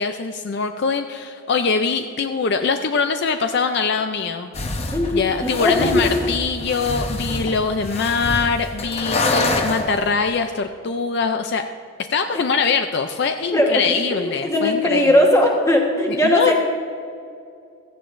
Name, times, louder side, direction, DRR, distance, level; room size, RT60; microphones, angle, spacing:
voice 1, 0.0-4.5 5.1-11.6 12.1-15.1 16.1-16.5, left 5 dB, 50° left, 7 dB, 0.4 m, -22 dB
sound 1, 4.5-10.1, left 2 dB, 30° left, 0.8 m, -26 dB
voice 2, 4.9-6.1 13.5-16.5, left 1 dB, 15° left, 1 dB, 1.2 m, -19 dB
16.5 x 14.5 x 2.6 m, 2.4 s
head